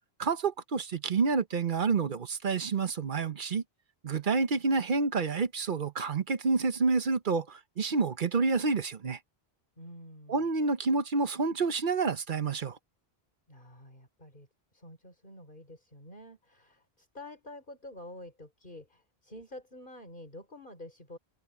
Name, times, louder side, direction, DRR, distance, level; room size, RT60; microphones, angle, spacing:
voice 1, 0.2-3.6 4.0-9.2 10.3-12.8, right 4 dB, 55° right, 1.0 m, -28 dB
voice 2, 9.8-10.5 13.5-21.2, left 1 dB, 50° left, 5.2 m, -48 dB
omnidirectional pair, 1.1 m